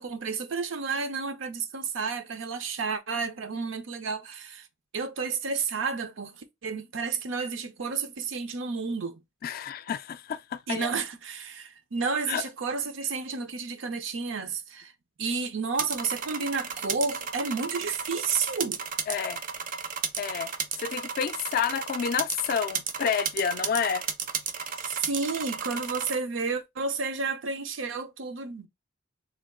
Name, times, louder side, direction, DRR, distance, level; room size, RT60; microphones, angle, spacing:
voice 1, 0.0-4.7 4.9-9.2 10.7-14.9 15.2-18.8 24.8-28.7, right 4 dB, 85° right, 0.6 m, -31 dB
voice 2, 9.4-10.9 12.3-12.4 19.1-19.4 20.2-20.5 20.8-24.1, left 7 dB, 50° left, 0.3 m, -29 dB
sound 1, 15.7-26.2, right 6 dB, 45° right, 0.5 m, -34 dB
3.4 x 2.3 x 3.6 m
head